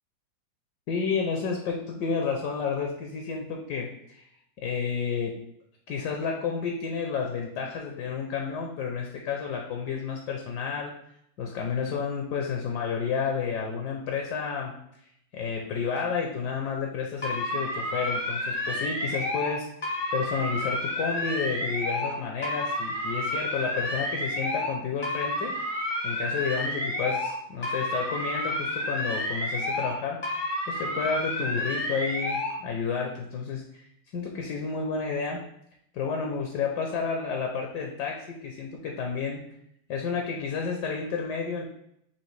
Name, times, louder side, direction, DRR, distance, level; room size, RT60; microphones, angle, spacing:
voice 1, 0.9-4.3 4.6-5.4 5.9-10.9 11.4-14.8 15.3-25.5 26.0-33.8 34.1-35.4 35.9-39.5 39.9-41.6, left 5 dB, 70° left, 1 dB, 1.0 m, -31 dB
sound 1, 17.2-19.5 19.8-22.1 22.4-24.7 25.0-27.3 27.6-29.9 30.2-32.5, left 1 dB, 45° left, 0.6 m, -30 dB
5.8 x 2.8 x 3.2 m, 0.77 s
omnidirectional pair, 2.3 m